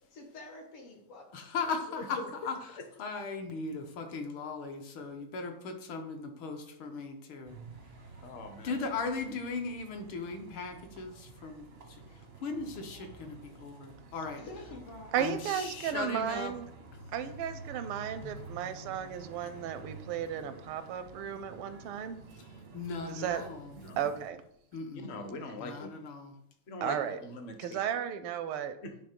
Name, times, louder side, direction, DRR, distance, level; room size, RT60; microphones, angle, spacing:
voice 1, 0.1-1.3 14.4-15.3, left 2 dB, 90° left, 1 dB, 2.4 m, -47 dB
voice 2, 1.3-7.6 8.6-14.4 15.2-16.5 18.2-18.3 22.4-22.5 22.7-23.8 24.7-25.1 25.6-26.3, left 4 dB, 70° left, 4 dB, 1.7 m, -38 dB
sound 1, 7.4-24.3, right 3 dB, 55° right, 0.7 m, -50 dB
voice 3, 8.2-8.8 23.7-24.1 24.9-25.9 26.7-27.8 28.8-28.9, left 2 dB, 50° left, 6 dB, 0.8 m, -42 dB
voice 4, 15.1-16.7 17.1-22.2 23.1-23.4 24.0-24.4 26.8-27.2 27.6-28.8, right 9 dB, 85° right, 11 dB, 1.5 m, -34 dB
9.7 x 3.3 x 5.2 m, 0.74 s
omnidirectional pair, 2.4 m